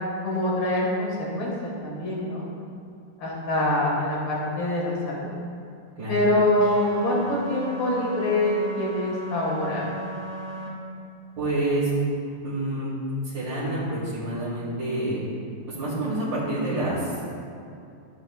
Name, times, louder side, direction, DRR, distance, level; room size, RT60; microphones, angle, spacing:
voice 1, 0.2-2.5 3.2-5.3 6.1-9.8, left 1 dB, 80° left, -4 dB, 2.4 m, -25 dB
sound 1, 6.6-10.7, right 2 dB, 60° right, 2.7 m, -35 dB
voice 2, 11.4-11.9 12.4-12.9 13.2-15.3 15.7-17.1, right 1 dB, 80° right, -11 dB, 2.9 m, -28 dB
13.0 x 8.7 x 2.3 m, 2.6 s
omnidirectional pair, 2.0 m